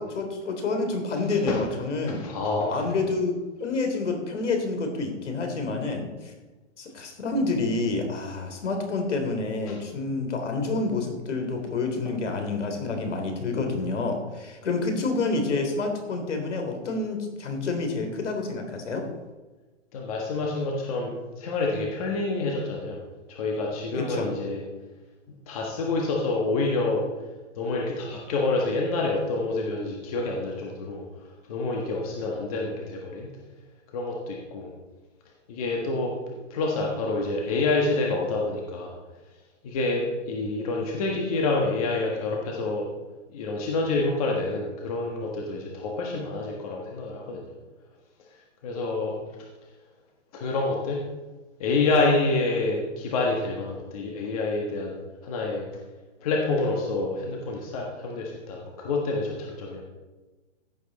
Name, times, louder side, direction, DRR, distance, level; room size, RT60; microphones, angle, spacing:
voice 1, 0.0-2.2 2.7-6.3 6.8-19.1 23.9-24.3, left 3 dB, 70° left, 5 dB, 3.4 m, -28 dB
voice 2, 2.1-2.9 9.7-9.8 12.9-13.0 19.9-23.0 23.3-24.6 25.5-27.0 27.5-33.3 33.9-34.7 35.5-36.1 36.5-39.0 39.6-42.9 43.3-47.4 48.6-49.2 50.3-51.0 51.6-55.7 56.2-59.8, left 3 dB, 30° left, -1 dB, 1.5 m, -27 dB
15.0 x 8.2 x 4.1 m, 1.2 s
hypercardioid pair, 165°, 37 cm